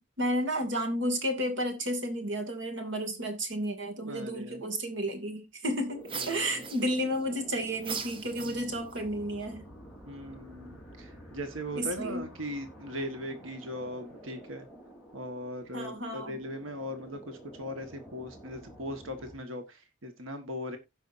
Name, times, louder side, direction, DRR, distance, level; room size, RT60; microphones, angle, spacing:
voice 1, 0.2-9.7 11.8-12.3 15.7-16.4, equal, 65° right, 2.5 m, -32 dB
voice 2, 4.0-4.6 6.1-6.5 8.4-8.6 10.1-14.7 15.1-20.8, equal, 85° right, 1.6 m, -39 dB
sound 1, 5.9-19.4, right 1 dB, ahead, 3.6 m, -50 dB
sound 2, 6.0-7.2 7.8-9.0, right 5 dB, 25° right, 0.8 m, -39 dB
16.5 x 5.7 x 2.7 m
head